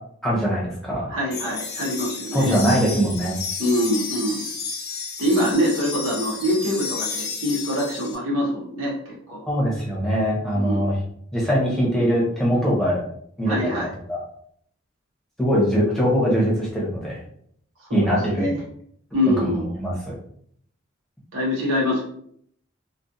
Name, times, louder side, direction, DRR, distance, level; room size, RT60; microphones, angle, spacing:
voice 1, 0.2-1.1 2.3-3.4 9.5-11.0 11.3-13.0 13.4-14.2 15.4-17.2 17.9-18.5 19.4-20.1, equal, ahead, -6 dB, 0.7 m, -22 dB
voice 2, 1.1-2.6 3.6-4.4 5.2-9.5 10.5-10.8 13.5-13.9 17.9-18.1 18.4-18.6 19.1-19.6 21.3-22.0, left 1 dB, 90° right, -3 dB, 0.7 m, -24 dB
sound 1, 1.3-8.2, left 4 dB, 50° left, 0.5 m, -32 dB
2.3 x 2.3 x 2.6 m, 0.65 s
head